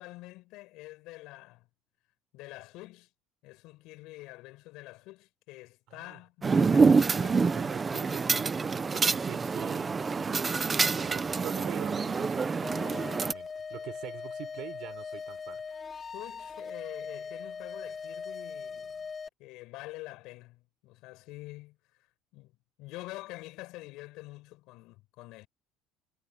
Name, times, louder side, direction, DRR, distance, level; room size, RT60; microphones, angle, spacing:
voice 1, 0.0-1.7 2.3-3.1 3.4-7.5 16.1-19.1 19.4-21.8 22.3-22.5 22.8-25.5, left 20 dB, 65° left, 6.2 m, -46 dB
voice 2, 5.9-6.2 6.8-10.4 10.8-15.6, right 16 dB, 55° right, 4.9 m, -44 dB
sound 1, 6.4-13.3, right 4 dB, 15° right, 0.7 m, -26 dB
sound 2, 12.6-19.3, left 5 dB, 20° left, 1.1 m, -40 dB
cardioid pair, 170°, 0 cm